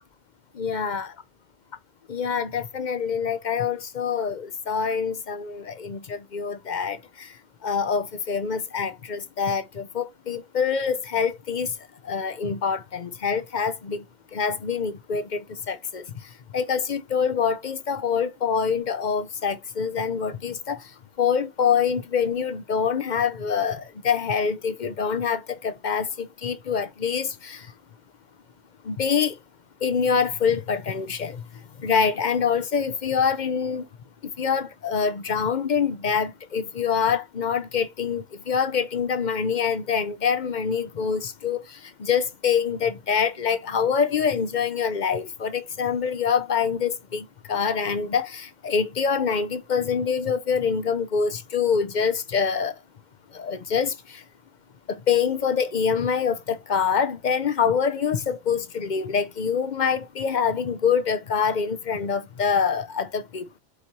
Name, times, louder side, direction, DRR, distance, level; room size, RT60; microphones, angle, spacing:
voice 1, 0.5-1.1 2.1-11.8 12.0-14.0 14.3-27.7 28.8-29.4 29.8-33.9 34.2-52.8 53.3-54.2 54.9-63.6, left 6 dB, 50° left, 0.7 m, -25 dB
8.1 x 4.2 x 3.0 m
omnidirectional pair, 1.1 m